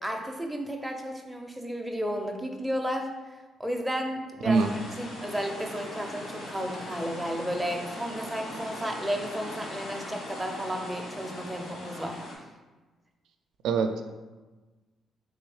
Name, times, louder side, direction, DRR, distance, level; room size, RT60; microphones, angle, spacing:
voice 1, 0.0-3.1 3.6-4.7 5.0-12.2, equal, ahead, 1 dB, 0.5 m, -33 dB
sound 1, 4.5-12.3, left 1 dB, 70° left, 1.3 m, -40 dB
voice 2, 13.6-14.0, right 4 dB, 85° right, 6 dB, 0.4 m, -23 dB
3.4 x 3.1 x 4.7 m, 1.2 s
cardioid pair, 150°, 0 cm